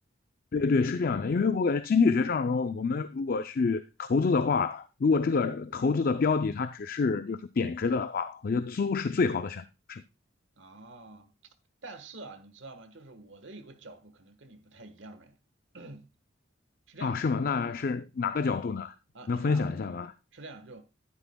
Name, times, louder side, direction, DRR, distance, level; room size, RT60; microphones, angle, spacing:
voice 1, 0.5-10.0 17.0-18.9 19.3-20.1, left 4 dB, 45° left, 0.4 m, -27 dB
voice 2, 10.5-11.3 11.8-15.4 15.7-16.1 16.9-17.2 19.1-19.7 20.3-20.9, right 2 dB, 65° right, 1.3 m, -47 dB
11.5 x 9.8 x 2.2 m
head